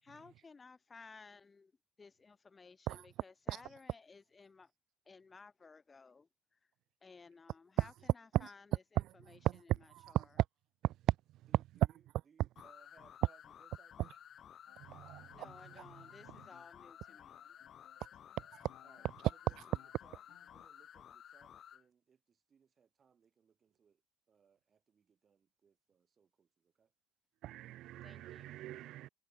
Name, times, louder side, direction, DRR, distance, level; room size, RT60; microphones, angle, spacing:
voice 1, 0.0-1.7 2.0-4.7 5.1-6.7 7.0-10.4 15.3-17.6 28.0-28.5, left 4 dB, 20° left, 2.2 m, -58 dB
voice 2, 11.5-14.0 18.8-24.0 24.3-26.9, right 6 dB, 30° right, 2.7 m, -69 dB
sound 1, 12.6-21.8, left 9 dB, 40° left, 1.3 m, -55 dB
sound 2, 14.7-20.6, left 19 dB, 70° left, 4.0 m, -65 dB
voice 3, 14.9-15.3 27.4-29.1, right 15 dB, 60° right, 0.3 m, -40 dB
cardioid pair, 135°, 0 cm